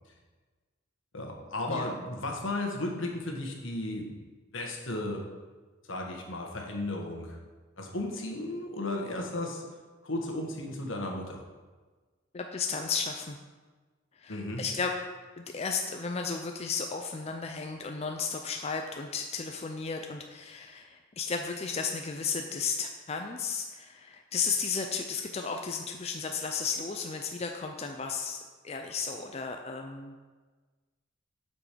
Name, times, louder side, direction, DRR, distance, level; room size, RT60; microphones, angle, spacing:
voice 1, 1.1-4.1 4.5-5.2 5.9-7.4 7.8-9.7 10.0-11.4 14.3-14.7, left 2 dB, 80° left, 1 dB, 1.4 m, -34 dB
voice 2, 12.3-13.4 14.1-14.9 15.4-30.2, left 5 dB, 30° left, 3 dB, 0.5 m, -34 dB
7.4 x 6.2 x 5.1 m, 1.3 s
head